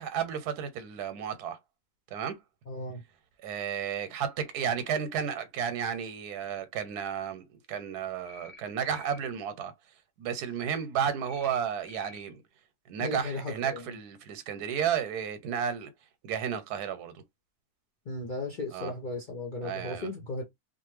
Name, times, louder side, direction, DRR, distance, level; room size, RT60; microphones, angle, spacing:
voice 1, 0.0-1.6 2.1-2.4 3.4-9.7 10.2-12.4 12.9-15.9 16.2-17.1 18.7-18.9 19.6-20.1, right 8 dB, 85° right, 1.2 m, -32 dB
voice 2, 2.7-3.0 13.0-13.9 18.1-20.4, left 2 dB, 55° left, 0.5 m, -36 dB
sound 1, 8.2-8.6 8.8-9.2 11.2-11.6 11.8-12.2, left 4 dB, 25° left, 0.8 m, -50 dB
2.4 x 2.4 x 3.1 m
omnidirectional pair, 1.7 m